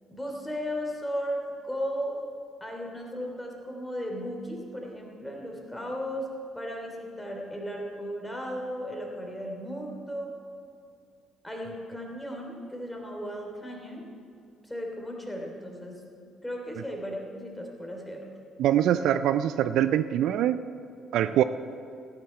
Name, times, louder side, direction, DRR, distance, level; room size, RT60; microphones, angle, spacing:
voice 1, 0.1-2.2 2.6-10.3 11.4-14.1 14.6-16.0 16.4-18.3 18.9-19.0, equal, 10° left, 1 dB, 3.1 m, -35 dB
voice 2, 18.6-20.6 21.1-21.4, right 11 dB, 65° right, 13 dB, 0.4 m, -23 dB
16.5 x 10.5 x 4.4 m, 2.5 s
figure-of-eight pair, 45°, 0 cm